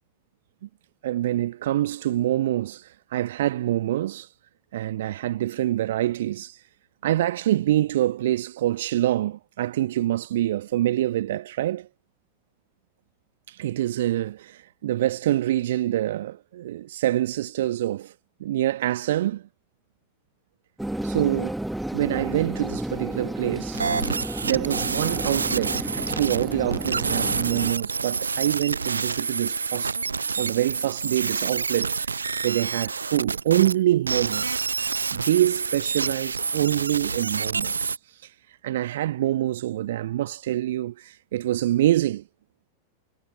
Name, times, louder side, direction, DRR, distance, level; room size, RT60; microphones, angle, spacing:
voice 1, 1.0-4.3 4.7-6.6 7.0-11.9 13.5-18.1 18.4-19.5 21.0-21.5 21.9-23.9 24.4-30.0 30.3-34.6 35.1-37.9 38.2-38.3 38.6-42.2, right 13 dB, 55° right, 1.3 m, -25 dB
sound 1, 20.8-27.7, right 1 dB, 5° right, 1.7 m, -32 dB
sound 2, 23.7-33.8 34.1-38.0, right 5 dB, 75° right, 0.4 m, -28 dB
figure-of-eight pair, 90°, 0 cm